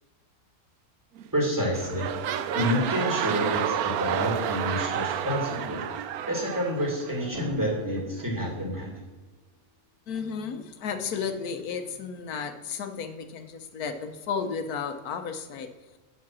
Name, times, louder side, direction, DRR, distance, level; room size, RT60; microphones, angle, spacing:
sound 1, 1.2-1.4 1.7-7.5 8.2-8.3, right 10 dB, 85° right, 1.1 m, -30 dB
voice 1, 1.3-2.1 2.5-5.8 6.3-9.0, equal, 15° right, -2 dB, 2.3 m, -28 dB
Drum, 7.3-9.8, left 1 dB, 40° left, 1.9 m, -43 dB
voice 2, 10.1-15.7, left 6 dB, 85° left, 8 dB, 1.3 m, -33 dB
7.4 x 6.7 x 6.1 m, 1.3 s
omnidirectional pair, 1.5 m